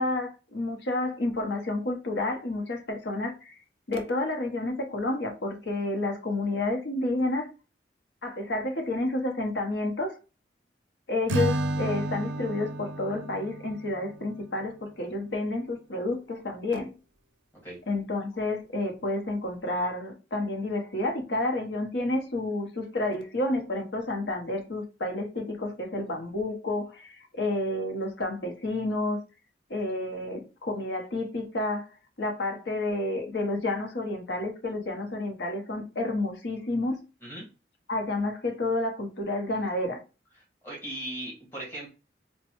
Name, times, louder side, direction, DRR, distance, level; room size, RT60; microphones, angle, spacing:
voice 1, 0.0-3.5 3.9-7.5 8.2-10.2 11.1-16.9 17.9-29.2 29.7-31.9 32.2-37.0 37.9-40.0, left 2 dB, 75° left, 0.9 m, -30 dB
Acoustic guitar / Strum, 11.3-14.6, right 2 dB, 85° right, 0.4 m, -31 dB
voice 2, 40.4-41.9, right 1 dB, 10° left, 1.6 m, -38 dB
4.1 x 2.2 x 3.0 m
head